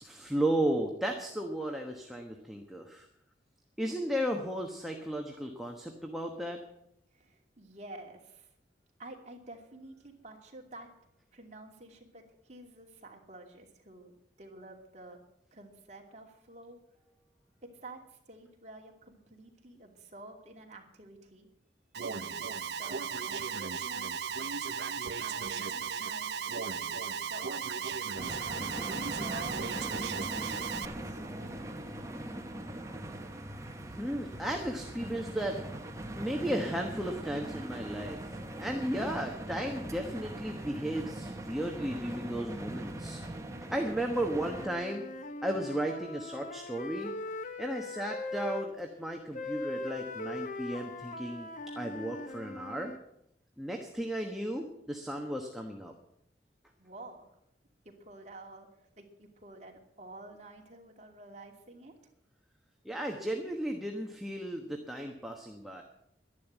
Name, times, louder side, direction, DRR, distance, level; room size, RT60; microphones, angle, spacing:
voice 1, 0.0-3.1 3.8-6.6 33.8-35.6 36.1-43.2 43.7-45.0 45.4-47.1 47.6-51.5 51.8-52.9 53.6-55.9 62.8-65.8, right 1 dB, ahead, 1 dB, 1.2 m, -34 dB
voice 2, 7.1-8.5 9.0-10.9 11.3-14.1 14.4-15.2 15.5-16.8 17.6-21.5 22.0-24.2 25.2-27.6 28.4-31.6 56.8-57.3 57.8-62.1, right 2 dB, 40° right, 1 dB, 2.7 m, -50 dB
Alarm, 21.9-30.9, right 6 dB, 75° right, 0.7 m, -36 dB
sound 1, 28.1-44.7, right 1 dB, 20° right, 1.3 m, -41 dB
Wind instrument woodwind instrument, 44.2-48.7 49.3-53.0, left 2 dB, 45° left, 1.0 m, -40 dB
11.5 x 11.0 x 8.1 m, 0.78 s
head